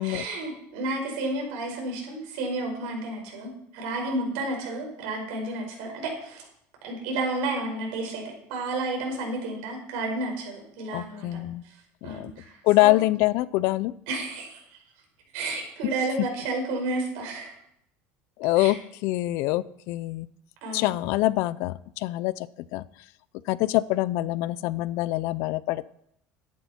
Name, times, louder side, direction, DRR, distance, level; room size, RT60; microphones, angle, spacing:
voice 1, 0.0-6.4 6.8-8.2 8.5-11.8 12.0-13.0 14.1-14.8 15.3-17.5 18.6-18.7 20.6-20.9, right 2 dB, 80° right, 1 dB, 5.0 m, -31 dB
voice 2, 10.9-11.6 12.0-12.3 12.6-13.9 18.4-20.3 20.7-22.8 23.5-25.9, left 18 dB, 65° left, 19 dB, 0.5 m, -25 dB
13.5 x 10.5 x 4.4 m, 0.73 s
cardioid pair, 160°, 5 cm